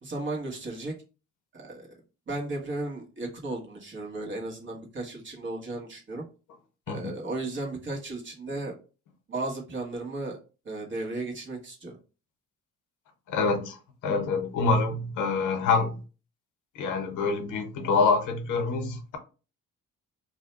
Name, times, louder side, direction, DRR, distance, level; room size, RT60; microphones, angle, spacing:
voice 1, 0.0-0.9 1.5-2.0 2.3-6.2 6.9-8.7 9.3-10.4 10.6-12.0, right 2 dB, 40° right, 1.2 m, -35 dB
voice 2, 13.3-13.8 14.0-16.0 16.7-19.2, left 4 dB, 85° left, 0.8 m, -26 dB
2.6 x 2.2 x 4.0 m
cardioid pair, 90°, 30 cm